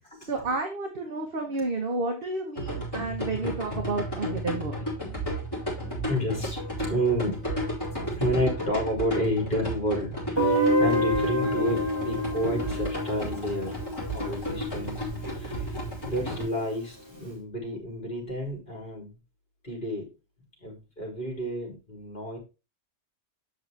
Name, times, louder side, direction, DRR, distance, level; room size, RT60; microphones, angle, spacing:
voice 1, 0.2-4.8, right 3 dB, 55° right, 2 dB, 1.5 m, -31 dB
sound 1, 2.6-16.4, equal, 20° left, 4.7 m, -33 dB
voice 2, 6.1-7.4 8.2-13.8 14.1-19.2 19.6-20.1 20.6-22.4, equal, 45° left, 0 dB, 4.1 m, -30 dB
Guitar, 10.4-15.2, equal, 20° right, 3.0 m, -27 dB
8.1 x 6.3 x 3.4 m, 0.29 s
omnidirectional pair, 1.2 m